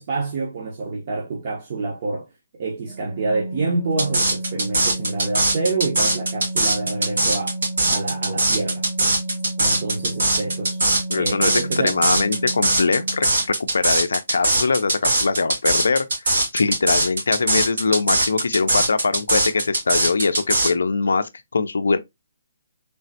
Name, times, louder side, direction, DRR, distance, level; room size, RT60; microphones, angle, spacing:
voice 1, 0.0-7.6 7.9-8.8 9.6-10.8 11.1-12.0, right 3 dB, 45° right, 0.6 m, -27 dB
Organ, 2.9-13.5, right 1 dB, 15° left, 0.5 m, -32 dB
sound 1, 4.0-20.7, right 2 dB, 75° right, 1.8 m, -21 dB
voice 2, 11.1-11.5 11.8-22.0, left 4 dB, 85° left, 0.3 m, -22 dB
3.2 x 2.0 x 2.6 m
hypercardioid pair, 165°, 0 cm